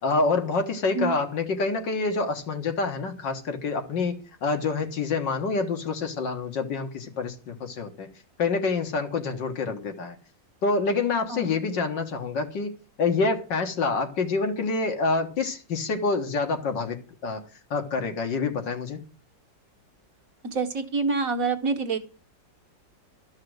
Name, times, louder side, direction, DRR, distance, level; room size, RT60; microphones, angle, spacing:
voice 1, 0.0-8.1 8.4-10.2 10.6-12.7 13.0-17.4 17.7-19.0, left 4 dB, 75° left, 2.2 m, -27 dB
voice 2, 11.3-11.6 20.5-22.0, right 4 dB, 50° right, 1.5 m, -26 dB
13.0 x 5.8 x 7.8 m
omnidirectional pair, 2.0 m